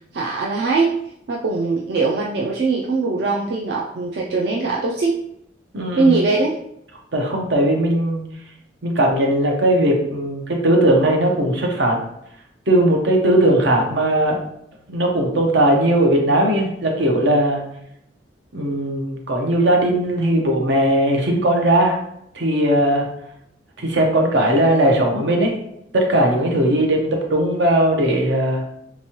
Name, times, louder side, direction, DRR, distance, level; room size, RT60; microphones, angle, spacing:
voice 1, 0.1-1.0 1.3-5.2 6.0-6.6, right 3 dB, 65° right, -2 dB, 0.4 m, -21 dB
voice 2, 5.7-6.2 7.1-8.2 8.8-12.0 12.7-14.4 14.9-17.6 18.5-22.0 22.3-23.1 23.8-25.5 25.9-28.6, right 1 dB, 80° right, 1 dB, 0.8 m, -18 dB
3.4 x 3.0 x 2.9 m, 0.75 s
head